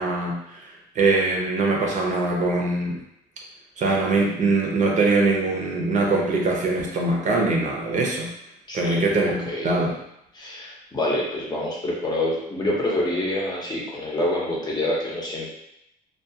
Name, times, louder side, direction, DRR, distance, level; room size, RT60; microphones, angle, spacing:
voice 1, 0.0-3.0 3.8-8.3 8.7-10.0, right 3 dB, 45° right, -1 dB, 0.6 m, -22 dB
voice 2, 8.7-9.1 9.5-9.7 10.3-15.5, left 1 dB, 25° left, -3 dB, 0.7 m, -26 dB
2.3 x 2.3 x 2.7 m, 0.79 s
cardioid pair, 110°, 17 cm